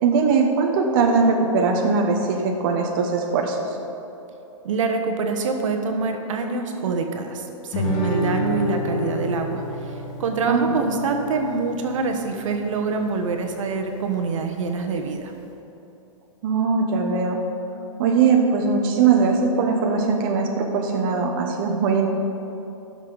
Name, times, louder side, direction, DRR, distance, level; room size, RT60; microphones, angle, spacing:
voice 1, 0.0-3.7 10.5-10.7 16.4-17.4 18.0-22.1, right 5 dB, 40° right, 1 dB, 0.9 m, -20 dB
voice 2, 4.6-15.3, right 4 dB, 70° right, 4 dB, 1.2 m, -25 dB
Guitar, 7.7-12.8, left 1 dB, 35° left, 1.7 m, -29 dB
15.0 x 6.5 x 4.0 m, 2.9 s
hypercardioid pair, 150°, 17 cm